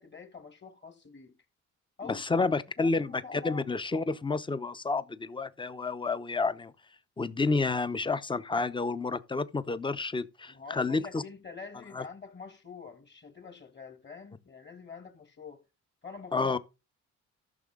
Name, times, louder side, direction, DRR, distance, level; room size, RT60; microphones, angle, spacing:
voice 1, 0.0-1.3 2.0-2.5 2.8-3.7 10.5-15.6 16.0-16.6, left 5 dB, 35° left, 2.3 m, -45 dB
voice 2, 2.1-6.7 7.2-11.2 11.9-12.0 16.3-16.6, left 3 dB, 15° left, 0.7 m, -30 dB
13.5 x 6.1 x 3.7 m
cardioid pair, 90°, 30 cm